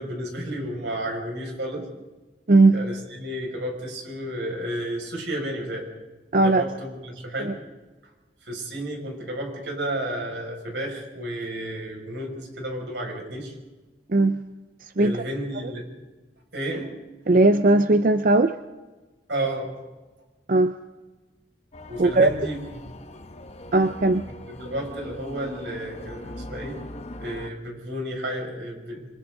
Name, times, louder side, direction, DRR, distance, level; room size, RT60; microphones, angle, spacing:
voice 1, 0.0-1.9 2.7-5.9 6.4-7.6 8.4-13.6 15.0-15.9 16.5-16.9 19.3-19.7 21.9-22.6 24.5-26.8 27.2-29.1, right 1 dB, 90° right, 0 dB, 6.6 m, -32 dB
voice 2, 2.5-2.8 6.3-6.6 7.4-7.5 14.1-14.4 15.0-15.2 17.3-18.6 20.5-20.7 22.0-22.3 23.7-24.2, right 2 dB, 50° right, 9 dB, 0.7 m, -18 dB
sound 1, 21.7-27.5, left 1 dB, 40° left, 1.4 m, -40 dB
27.0 x 27.0 x 4.0 m, 1.2 s
head